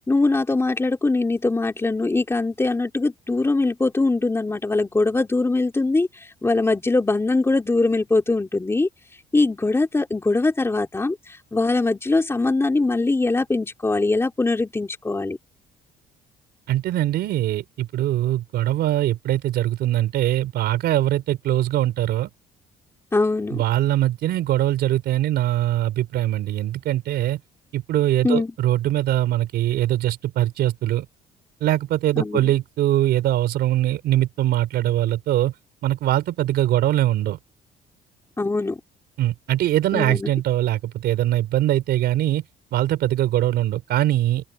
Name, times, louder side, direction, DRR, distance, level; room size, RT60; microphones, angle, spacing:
voice 1, 0.1-6.1 6.4-8.9 9.3-15.4 23.1-23.6 28.2-28.5 32.2-32.5 38.4-38.8 39.9-40.3, left 3 dB, 15° left, 3.7 m, -22 dB
voice 2, 16.7-22.3 23.5-27.4 27.7-31.1 31.6-35.5 35.8-37.4 39.2-42.4 42.7-44.5, right 13 dB, 75° right, 4.2 m, -22 dB
open air
cardioid pair, 110°, 17 cm